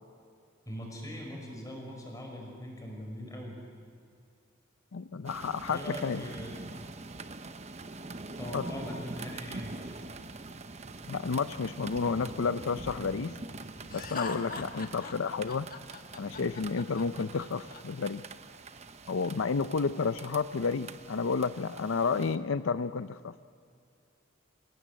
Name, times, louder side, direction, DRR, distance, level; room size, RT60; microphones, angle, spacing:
voice 1, 0.7-3.6 5.7-6.5 8.4-9.7, equal, 15° left, 0 dB, 5.5 m, -41 dB
voice 2, 4.9-6.2 8.5-8.6 11.1-13.4 13.9-15.7 16.2-18.2 19.1-23.3, left 5 dB, 90° left, 13 dB, 0.6 m, -31 dB
sound 1, 5.2-22.4, right 2 dB, 35° right, 0.9 m, -44 dB
Laughter, 13.9-17.8, left 4 dB, 45° left, 1.7 m, -41 dB
28.5 x 16.5 x 8.2 m, 2.3 s
head